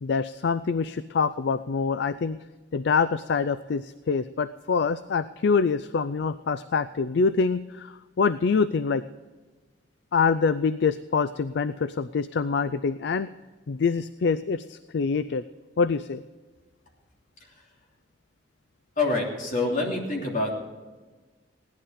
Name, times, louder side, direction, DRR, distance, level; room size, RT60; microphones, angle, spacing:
voice 1, 0.0-2.4 2.7-9.0 10.1-13.3 13.7-15.4 15.8-16.2, left 5 dB, 60° left, 14 dB, 0.4 m, -25 dB
voice 2, 19.0-20.5, left 2 dB, 45° left, -1 dB, 3.2 m, -26 dB
17.0 x 11.5 x 5.1 m, 1.3 s
head